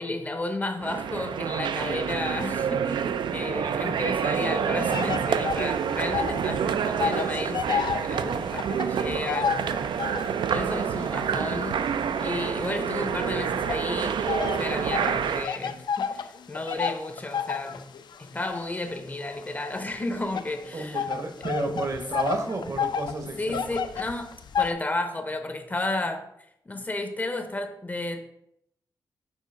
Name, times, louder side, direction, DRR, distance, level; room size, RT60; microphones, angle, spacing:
voice 1, 0.0-10.2 10.5-11.8 12.2-17.8 18.2-21.1 23.4-26.2 26.7-28.2, left 2 dB, 20° left, 6 dB, 0.6 m, -33 dB
sound 1, 0.8-15.5, right 7 dB, 75° right, 0.3 m, -28 dB
sound 2, 4.9-6.5 6.7-10.4 11.0-13.1 13.7-24.7, left 7 dB, 65° left, 0.4 m, -31 dB
voice 2, 20.7-23.6, right 2 dB, 40° right, 5 dB, 0.8 m, -31 dB
6.7 x 2.8 x 5.2 m, 0.76 s
wide cardioid pair, 130°, 8 cm